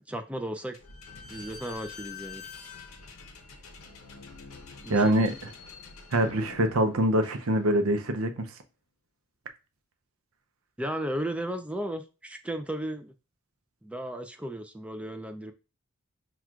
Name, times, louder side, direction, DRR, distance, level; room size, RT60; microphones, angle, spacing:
voice 1, 0.1-0.8 1.3-2.4 4.8-5.1 10.8-13.1 13.8-15.5, right 1 dB, 5° right, 0.3 m, -35 dB
Slam / Squeak, 0.7-8.0, left 5 dB, 80° left, 0.7 m, -46 dB
voice 2, 4.9-5.5 6.1-8.5, right 1 dB, 75° right, 0.6 m, -24 dB
5.9 x 2.3 x 2.4 m
head